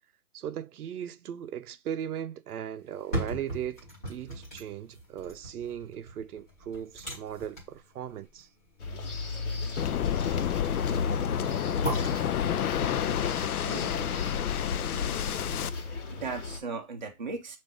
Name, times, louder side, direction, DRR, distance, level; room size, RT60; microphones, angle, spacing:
voice 1, 0.3-8.5, right 9 dB, 85° right, 0.6 m, -38 dB
sound 1, 2.8-14.9 15.3-15.4, right 1 dB, 10° left, 0.7 m, -40 dB
sound 2, 8.8-16.6, left 3 dB, 55° left, 1.2 m, -35 dB
Waves surf, 9.8-15.7, left 10 dB, 80° left, 0.5 m, -29 dB
voice 2, 13.6-14.0 15.0-15.1 16.1-17.6, right 4 dB, 35° right, 0.5 m, -37 dB
6.0 x 2.6 x 3.4 m
hypercardioid pair, 170°, 44 cm